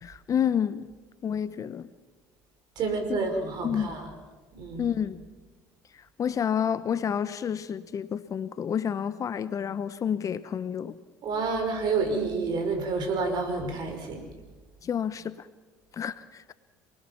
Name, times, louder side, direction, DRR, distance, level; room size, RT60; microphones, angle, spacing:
voice 1, 0.0-0.9 1.2-1.9 3.1-3.2 3.6-3.9 4.8-5.2 6.2-11.0 14.8-15.4 15.9-16.5, left 8 dB, 40° left, 1.0 m, -29 dB
voice 2, 2.8-4.1 4.5-4.9 11.2-14.2, right 4 dB, 55° right, 5.3 m, -29 dB
27.5 x 20.0 x 5.9 m
hypercardioid pair, 70°, 9 cm